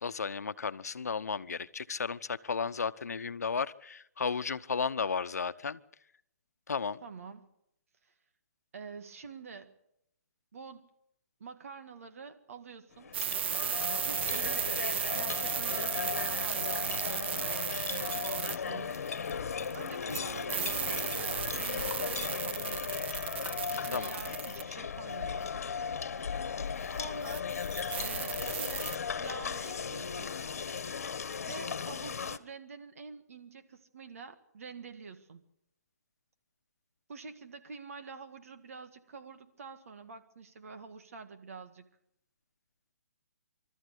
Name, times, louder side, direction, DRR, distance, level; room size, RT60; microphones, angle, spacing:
voice 1, 0.0-5.8 6.7-7.0 23.9-24.2, left 5 dB, 90° left, 13 dB, 1.0 m, -34 dB
voice 2, 7.0-7.5 8.0-8.1 8.7-9.7 10.5-10.9 11.4-13.1 14.0-14.7 15.1-19.0 19.7-23.1 23.7-25.6 26.9-27.5 27.9-28.9 29.2-30.4 31.4-35.4 37.1-41.9, right 5 dB, 60° right, 9 dB, 1.9 m, -47 dB
sound 1, 12.9-32.4, left 6 dB, 70° left, 1.3 m, -36 dB
sound 2, 13.1-19.3 19.6-24.6 27.0-27.1 27.3-29.0, right 9 dB, 45° right, 0.8 m, -35 dB
27.5 x 13.5 x 8.4 m, 0.79 s
hypercardioid pair, 160°, 8 cm